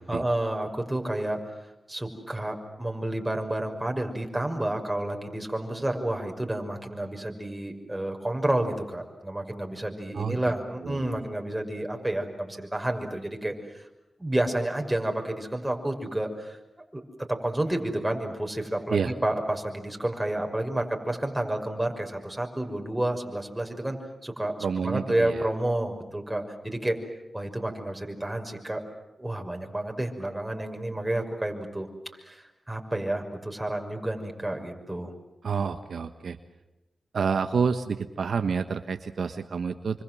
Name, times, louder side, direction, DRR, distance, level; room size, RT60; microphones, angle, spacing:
voice 1, 0.1-1.4 1.9-13.8 14.2-16.6 16.9-17.0 17.3-24.5 24.8-27.0 27.3-28.8 29.2-31.9 32.2-35.1, right 1 dB, 15° right, 3 dB, 6.0 m, -30 dB
voice 2, 24.6-25.5 35.4-36.4 37.1-40.0, right 5 dB, 80° right, 8 dB, 1.3 m, -28 dB
28.0 x 25.0 x 7.8 m, 1.0 s
cardioid pair, 50°, 0 cm